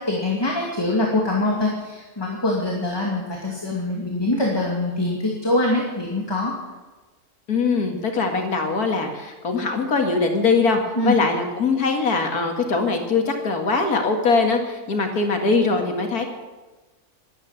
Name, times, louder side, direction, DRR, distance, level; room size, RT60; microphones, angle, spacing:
voice 1, 0.1-6.5 11.0-11.1, left 2 dB, 15° left, -2 dB, 2.4 m, -23 dB
voice 2, 7.5-16.3, left 4 dB, 80° left, 4 dB, 2.5 m, -22 dB
13.0 x 12.0 x 8.2 m, 1.2 s
omnidirectional pair, 1.6 m